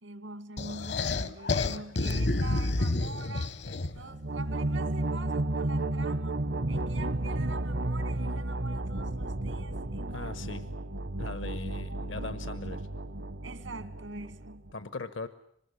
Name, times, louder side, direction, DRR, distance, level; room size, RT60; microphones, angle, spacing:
voice 1, 0.0-3.5 3.9-6.4 6.7-10.3 11.9-12.3 13.4-14.7, right 3 dB, 85° right, 2.1 m, -44 dB
sound 1, 0.6-4.1, left 2 dB, 60° left, 1.0 m, -29 dB
sound 2, 4.1-14.7, right 2 dB, 70° right, 1.1 m, -33 dB
voice 2, 10.1-10.7 11.2-12.9 14.7-15.3, left 3 dB, 80° left, 1.2 m, -39 dB
24.5 x 20.5 x 9.8 m
head